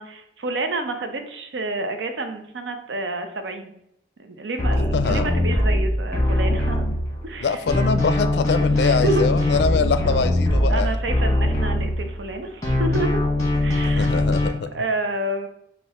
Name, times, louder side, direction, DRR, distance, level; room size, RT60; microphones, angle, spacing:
voice 1, 0.0-3.7 4.2-6.9 7.2-7.6 8.7-9.5 10.7-13.2 13.6-14.1 14.7-15.5, right 2 dB, 85° right, 6 dB, 0.6 m, -29 dB
sound 1, 4.6-7.4 7.7-12.3 12.6-14.5, left 1 dB, 20° left, 1.1 m, -21 dB
voice 2, 4.9-5.4 7.4-11.0 13.8-14.7, left 5 dB, 70° left, 11 dB, 0.4 m, -24 dB
6.2 x 2.4 x 3.5 m, 0.76 s
head